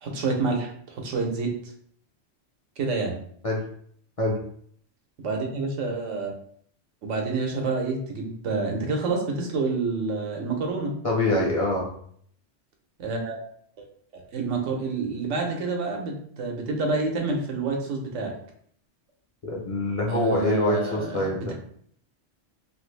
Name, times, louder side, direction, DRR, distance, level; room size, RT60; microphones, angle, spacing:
voice 1, 0.0-1.5 2.8-3.2 5.2-6.3 7.0-10.9 13.0-13.4 13.8-13.9 14.3-18.3 20.1-21.5, right 3 dB, 85° right, 1 dB, 1.1 m, -28 dB
voice 2, 11.0-11.9 19.4-21.5, left 1 dB, 40° left, -4 dB, 0.5 m, -25 dB
3.1 x 2.5 x 3.2 m, 0.62 s
omnidirectional pair, 1.2 m